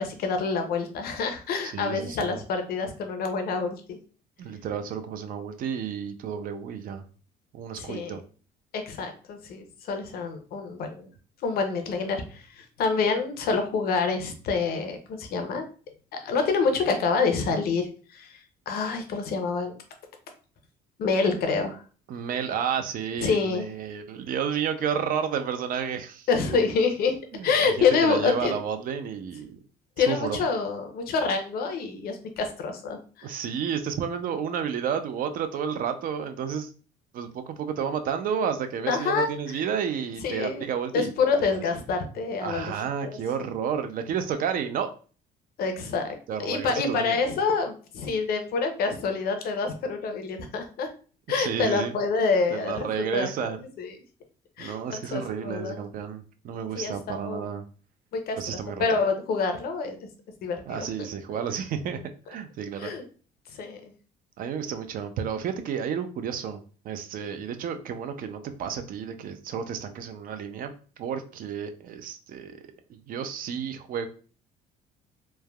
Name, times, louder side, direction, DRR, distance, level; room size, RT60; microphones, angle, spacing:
voice 1, 0.0-4.0 7.7-8.2 8.7-11.1 11.4-15.7 16.1-18.4 18.7-19.7 21.0-21.8 23.2-23.7 26.3-27.2 27.4-28.5 30.0-33.3 38.9-39.3 40.2-40.7 40.9-42.7 43.0-43.5 45.6-50.9 51.3-52.9 53.1-53.3 53.8-54.0 54.6-55.8 56.7-57.5 58.1-60.1 60.4-60.9 61.3-61.4 62.8-63.0 63.5-63.9, left 4 dB, 65° left, 6 dB, 0.6 m, -27 dB
voice 2, 1.7-2.4 4.4-7.0 7.5-8.2 22.1-26.6 27.3-29.6 30.1-30.4 33.2-36.7 37.1-41.1 42.4-44.9 46.3-47.2 51.4-51.9 52.5-53.6 54.6-57.6 58.4-59.0 60.7-62.0 62.3-62.9 64.4-70.7 71.0-72.6 72.9-74.1, right 7 dB, 55° right, 8 dB, 0.4 m, -31 dB
3.2 x 2.1 x 2.2 m, 0.39 s
cardioid pair, 110°, 17 cm